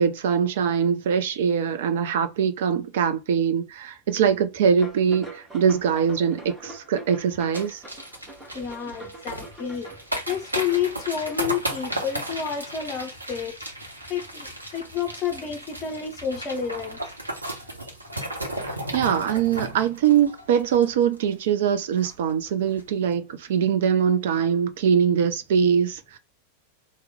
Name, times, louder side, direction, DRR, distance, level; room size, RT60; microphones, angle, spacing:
voice 1, 0.0-7.8 18.9-26.2, right 7 dB, 55° right, 0.5 m, -22 dB
sound 1, 4.8-12.8, right 2 dB, 10° right, 1.2 m, -44 dB
sound 2, 7.5-21.3 21.6-21.7 22.0-22.3 22.7-22.8, right 1 dB, 85° right, 0.8 m, -34 dB
voice 2, 8.5-9.9 10.3-13.6 14.1-17.0, left 8 dB, 30° left, 0.6 m, -30 dB
3.0 x 2.1 x 3.5 m
figure-of-eight pair, 90°, 0 cm